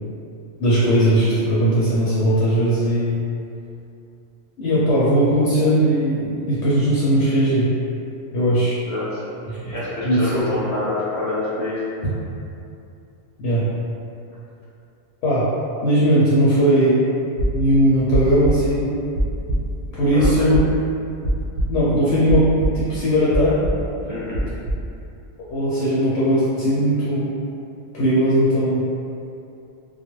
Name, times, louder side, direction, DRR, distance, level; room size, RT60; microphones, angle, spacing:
voice 1, 0.6-3.2 4.6-7.7 8.3-8.8 9.5-9.7 10.0-10.4 12.0-12.1 13.4-13.7 15.2-15.5 15.8-17.0 17.5-18.9 19.9-20.6 21.7-22.5 22.7-23.6 25.5-27.3 27.9-28.8, right 1 dB, 70° left, -9 dB, 0.8 m, -18 dB
voice 2, 8.8-9.2 9.6-11.8 20.1-20.3 24.0-24.4, left 2 dB, 15° left, -11 dB, 0.7 m, -27 dB
sound 1, 17.4-22.0 22.2-23.0 23.3-23.9 24.3-24.9, right 1 dB, 80° right, 0.9 m, -24 dB
2.3 x 2.1 x 2.9 m, 2.6 s
omnidirectional pair, 1.3 m